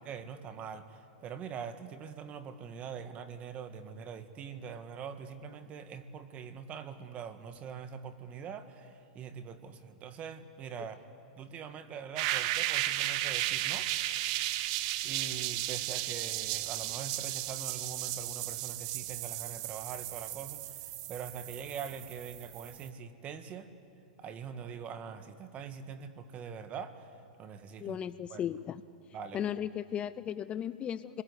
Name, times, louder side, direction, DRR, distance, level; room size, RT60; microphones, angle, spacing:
voice 1, 0.0-11.0 11.4-13.9 15.0-23.7 24.2-27.1 27.4-28.0 28.3-28.4 29.1-29.4, right 7 dB, 30° right, 10 dB, 1.6 m, -43 dB
sound 1, 12.2-22.9, right 15 dB, 50° right, 0.9 m, -35 dB
voice 2, 27.8-28.8 29.3-31.2, left 9 dB, 25° left, 15 dB, 0.5 m, -36 dB
29.0 x 21.5 x 8.1 m, 2.6 s
hypercardioid pair, 125°, 4 cm